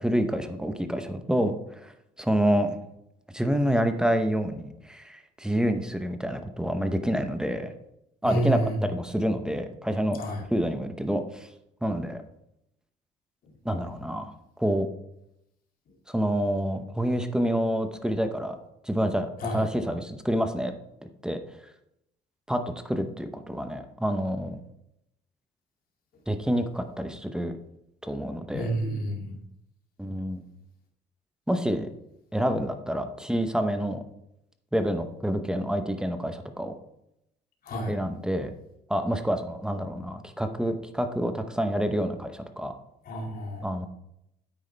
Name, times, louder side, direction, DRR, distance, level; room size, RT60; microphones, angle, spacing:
voice 1, 0.0-1.9 2.2-2.8 3.3-7.7 8.2-10.2 10.5-11.5 11.8-12.2 13.6-14.3 14.6-14.9 16.1-18.6 18.8-20.7 21.2-21.4 22.5-24.6 26.3-27.5 28.0-28.7 30.0-30.4 31.5-31.9 32.3-34.0 34.7-36.8 37.9-38.5 38.9-42.7 43.6-43.9, equal, 5° right, 7 dB, 0.8 m, -28 dB
voice 2, 8.2-8.8 10.2-10.4 19.4-19.7 28.5-29.3 37.7-37.9 43.1-43.7, right 1 dB, 60° left, 1 dB, 2.5 m, -29 dB
9.3 x 8.0 x 3.3 m, 0.81 s
cardioid pair, 110°, 17 cm